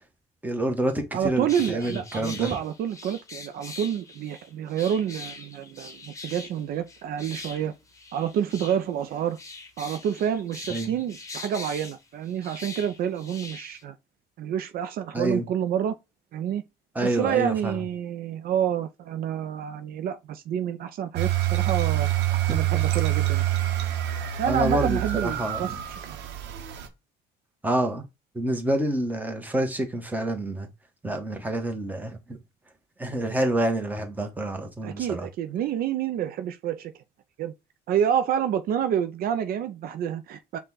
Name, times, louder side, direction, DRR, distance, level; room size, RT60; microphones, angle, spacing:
voice 1, 0.4-2.6 10.7-10.9 15.1-15.5 16.9-17.8 24.5-25.8 27.6-28.0 28.3-30.7 31.0-32.4 33.0-35.3, right 1 dB, 10° right, 1.1 m, -27 dB
voice 2, 1.1-7.7 8.1-9.4 9.8-13.9 14.4-16.0 16.3-16.6 17.0-22.1 22.5-23.4 24.4-26.2 34.8-36.9 37.4-37.5 37.9-40.6, right 9 dB, 65° right, 0.5 m, -28 dB
sound 1, 1.5-13.8, left 3 dB, 20° left, 1.1 m, -42 dB
sound 2, 21.2-26.9, right 14 dB, 85° right, 0.9 m, -26 dB
5.4 x 2.4 x 3.9 m
cardioid pair, 110°, 17 cm